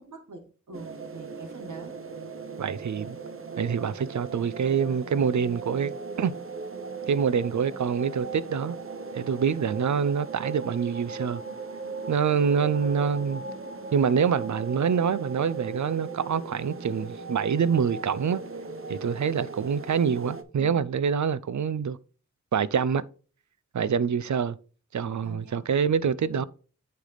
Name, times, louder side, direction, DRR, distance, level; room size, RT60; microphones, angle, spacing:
voice 1, 0.0-1.9 20.6-20.9 25.2-25.6 26.3-26.5, right 3 dB, 90° right, 1.6 m, -44 dB
sound 1, 0.7-20.4, right 4 dB, 45° right, 0.8 m, -38 dB
voice 2, 2.6-3.2 3.6-6.3 7.1-8.8 9.1-11.4 12.1-13.4 13.9-18.4 18.9-22.0 22.5-23.0 23.7-24.6 24.9-26.4, right 6 dB, 75° right, 0.5 m, -26 dB
9.5 x 3.3 x 3.9 m
wide cardioid pair, 45°, 30 cm